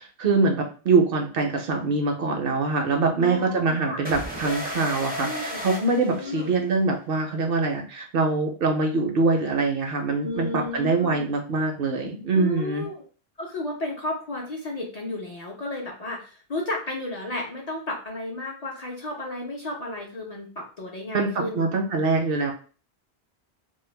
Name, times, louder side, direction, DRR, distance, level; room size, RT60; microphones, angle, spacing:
voice 1, 0.0-12.9 21.1-22.5, right 3 dB, 65° right, 3 dB, 0.7 m, -24 dB
voice 2, 3.1-4.0 5.2-5.6 6.1-6.5 10.2-11.3 12.3-13.0 13.4-21.6, left 2 dB, 45° left, -2 dB, 0.6 m, -33 dB
sound 1, 4.0-6.8, equal, 15° right, 0.4 m, -34 dB
2.2 x 2.0 x 3.1 m, 0.38 s
omnidirectional pair, 1.1 m